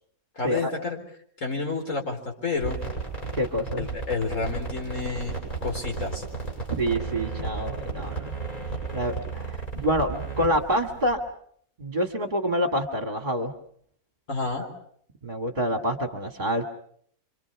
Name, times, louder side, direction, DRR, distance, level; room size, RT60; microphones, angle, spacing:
voice 1, 0.4-1.0 1.4-2.8 3.8-6.2 14.3-14.7, left 4 dB, 60° left, 2 dB, 4.5 m, -30 dB
sound 1, 2.5-11.1, right 4 dB, 25° left, 8.2 m, -34 dB
voice 2, 3.3-3.8 6.8-8.3 8.9-11.2 11.8-13.5 14.6-14.7 15.2-16.6, equal, 35° right, 5 dB, 2.0 m, -27 dB
27.5 x 25.5 x 5.9 m, 0.64 s
omnidirectional pair, 1.5 m